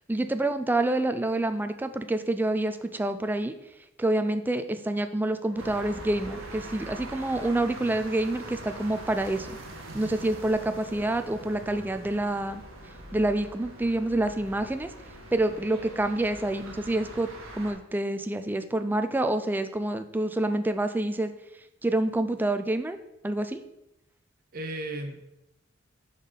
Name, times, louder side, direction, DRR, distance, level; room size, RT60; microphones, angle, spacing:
voice 1, 0.1-3.5 4.0-9.6 9.9-12.6 13.1-14.9 15.3-21.3 21.8-23.0 23.2-23.6, right 1 dB, 10° right, 9 dB, 0.3 m, -27 dB
Musical instrument, 5.4-17.3, left 1 dB, 75° left, 1.3 m, -51 dB
sound 1, 5.6-17.7, right 1 dB, 80° right, 1.1 m, -43 dB
voice 2, 24.5-25.2, right 1 dB, 45° right, 5 dB, 0.7 m, -35 dB
5.4 x 4.0 x 4.9 m, 0.87 s
head